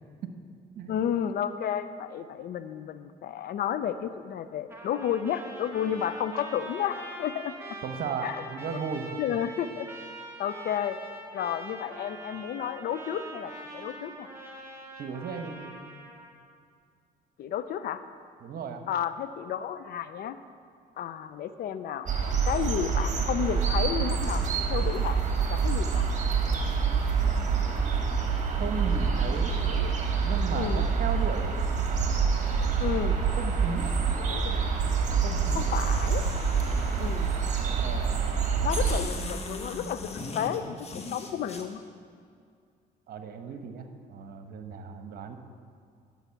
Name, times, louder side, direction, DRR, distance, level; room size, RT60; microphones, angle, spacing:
voice 1, 0.9-7.5 8.2-8.4 9.2-9.9 10.4-11.0 11.3-14.3 17.4-18.0 18.9-20.4 21.0-22.1 22.4-26.1 29.6-29.9 30.5-30.9 32.8-33.2 34.2-34.7 35.5-36.2 37.0-37.4 38.6-40.1 40.3-41.8, left 9 dB, 65° left, 12 dB, 0.6 m, -32 dB
Trumpet, 4.7-16.3, right 2 dB, 15° right, 1.7 m, -43 dB
voice 2, 7.8-9.2 15.0-15.7 18.4-18.8 27.2-27.7 28.6-29.5 30.2-31.6 33.0-34.1 35.2-35.7 37.7-38.5 43.1-45.4, right 6 dB, 60° right, 7 dB, 1.1 m, -36 dB
sound 1, 22.1-39.0, right 5 dB, 45° right, 1.6 m, -26 dB
sound 2, 35.3-37.6 38.3-38.4 38.7-41.6, left 3 dB, 40° left, 1.2 m, -40 dB
11.0 x 7.1 x 5.8 m, 2.2 s
supercardioid pair, 80°, 17 cm